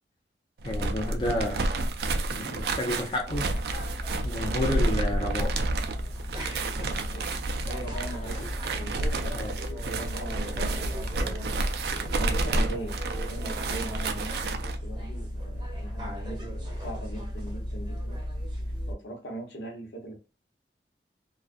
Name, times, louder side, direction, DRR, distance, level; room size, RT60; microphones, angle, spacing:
voice 1, 0.6-1.7 2.3-3.5 4.2-5.7 9.3-9.5, left 1 dB, 30° left, 0.5 m, -31 dB
sound 1, 0.6-14.8, right 2 dB, 65° right, 0.4 m, -30 dB
sound 2, 3.3-18.9, equal, 25° right, 0.7 m, -35 dB
voice 2, 7.7-11.4 12.2-18.2 18.9-20.2, right 1 dB, 85° left, 1.0 m, -40 dB
2.4 x 2.3 x 2.4 m
head